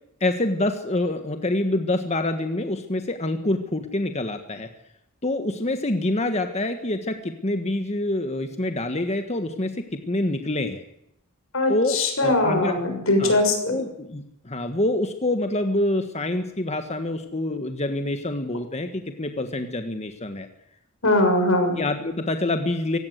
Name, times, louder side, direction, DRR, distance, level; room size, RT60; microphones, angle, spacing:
voice 1, 0.2-4.7 5.2-10.8 11.7-12.7 13.2-20.5 21.8-23.0, left 1 dB, 30° left, 7 dB, 1.5 m, -26 dB
voice 2, 11.5-13.7 21.0-21.8, left 2 dB, 90° left, 4 dB, 6.7 m, -21 dB
24.5 x 17.5 x 8.2 m, 0.79 s
head